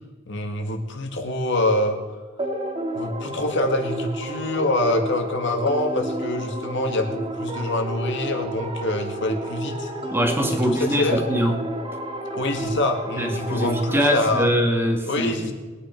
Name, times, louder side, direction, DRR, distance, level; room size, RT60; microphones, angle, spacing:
voice 1, 0.3-2.0 2.9-9.9 10.5-11.2 12.3-14.5 15.1-15.5, left 2 dB, 65° left, 5 dB, 2.0 m, -25 dB
vox and leads loop, 2.4-14.3, right 1 dB, 30° right, 2.0 m, -31 dB
voice 2, 10.1-11.6 13.2-15.5, equal, 10° right, 3 dB, 1.7 m, -23 dB
21.5 x 9.2 x 4.6 m, 1.4 s
head